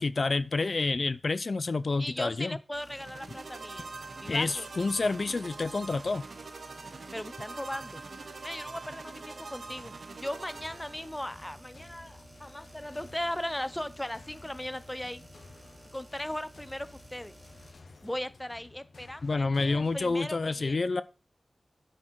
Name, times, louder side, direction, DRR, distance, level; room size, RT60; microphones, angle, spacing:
voice 1, 0.0-2.6 4.3-6.2 19.2-21.0, left 3 dB, 60° left, 0.4 m, -28 dB
voice 2, 2.0-3.9 4.2-4.7 7.1-8.0 8.4-9.9 10.2-15.2 15.9-17.4 18.0-20.8, left 1 dB, 10° left, 0.5 m, -38 dB
sound 1, 2.7-17.7, right 1 dB, 30° right, 1.9 m, -54 dB
sound 2, 2.9-11.4, right 4 dB, 80° right, 0.9 m, -44 dB
sound 3, 10.5-20.1, left 3 dB, 90° left, 1.1 m, -54 dB
9.6 x 4.5 x 4.5 m
wide cardioid pair, 90°, 0 cm